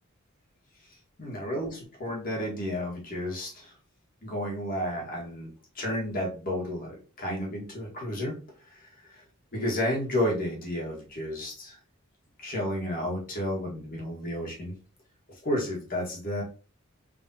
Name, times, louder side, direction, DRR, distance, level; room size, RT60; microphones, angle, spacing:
voice 1, 1.2-3.7 4.2-8.4 8.7-9.2 9.5-11.8 12.4-14.7 15.4-16.4, left 1 dB, 45° left, -3 dB, 1.5 m, -32 dB
3.7 x 3.4 x 2.7 m, 0.35 s
head